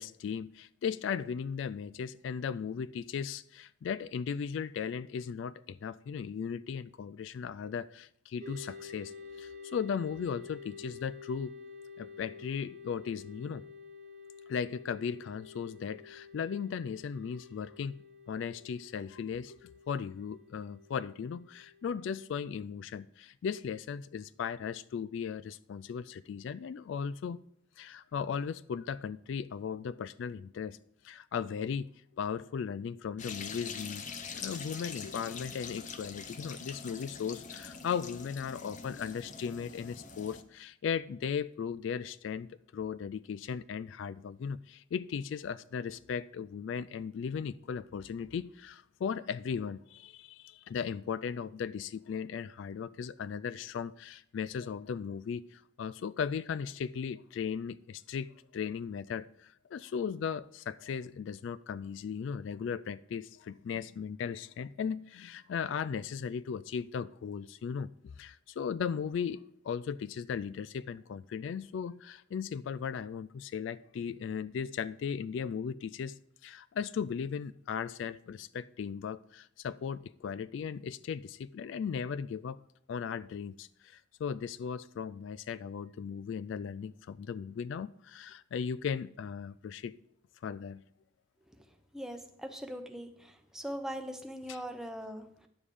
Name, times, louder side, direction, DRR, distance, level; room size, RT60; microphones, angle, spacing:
voice 1, 0.0-9.1 9.4-11.5 12.0-13.6 14.5-27.4 27.8-30.8 31.0-34.1 34.3-82.6 82.9-89.9 90.4-90.8 94.5-94.6, left 6 dB, 65° left, 0.3 m, -37 dB
sound 1, 8.4-22.3, left 5 dB, 40° right, 1.1 m, -50 dB
sound 2, 33.2-40.4, left 5 dB, 40° left, 0.7 m, -44 dB
voice 2, 91.9-95.5, equal, 5° right, 0.8 m, -41 dB
10.0 x 7.2 x 4.9 m
head